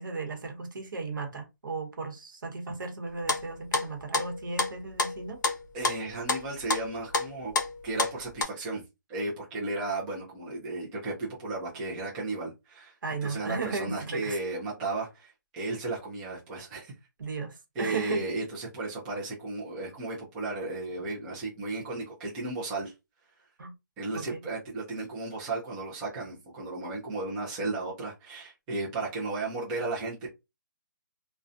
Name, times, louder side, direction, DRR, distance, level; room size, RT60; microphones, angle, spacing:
voice 1, 0.0-5.4 13.0-14.4 17.2-18.2 23.6-23.7 24.1-24.4, right 4 dB, 80° right, 0.9 m, -35 dB
sound 1, 3.3-8.4, left 3 dB, 65° left, 0.6 m, -29 dB
voice 2, 5.7-7.5 7.8-8.8 9.1-13.0 13.2-16.9 17.8-22.9 24.0-30.3, right 2 dB, 5° right, 0.3 m, -34 dB
2.5 x 2.1 x 2.4 m
hypercardioid pair, 170°, 11 cm